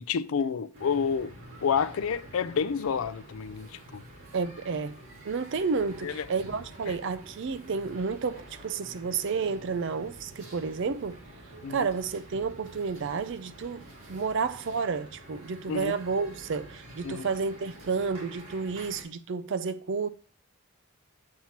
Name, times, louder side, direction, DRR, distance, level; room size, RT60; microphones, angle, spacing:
voice 1, 0.0-1.3 1.6-4.0 6.0-6.3 6.9-7.0 11.6-11.9 15.7-15.9 17.0-17.3, left 6 dB, 70° left, 0.4 m, -29 dB
sound 1, 0.7-19.0, right 1 dB, 80° right, 1.9 m, -48 dB
voice 2, 4.3-5.0 5.2-11.2 11.7-20.1, right 5 dB, 55° right, 0.4 m, -31 dB
7.3 x 7.1 x 2.9 m
head